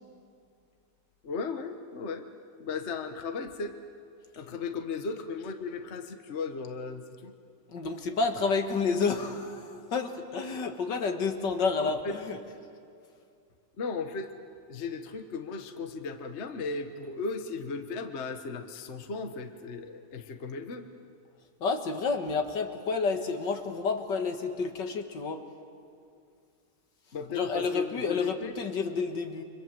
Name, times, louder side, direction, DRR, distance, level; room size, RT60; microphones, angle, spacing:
voice 1, 1.2-2.3 2.6-3.7 4.4-7.3 11.8-12.1 13.8-14.3 14.7-20.9 27.1-28.5, left 4 dB, 40° left, 7 dB, 1.4 m, -36 dB
voice 2, 7.7-12.4 21.6-25.4 27.3-29.4, left 4 dB, 65° left, 6 dB, 2.2 m, -30 dB
30.0 x 25.5 x 7.7 m, 2.3 s
omnidirectional pair, 2.1 m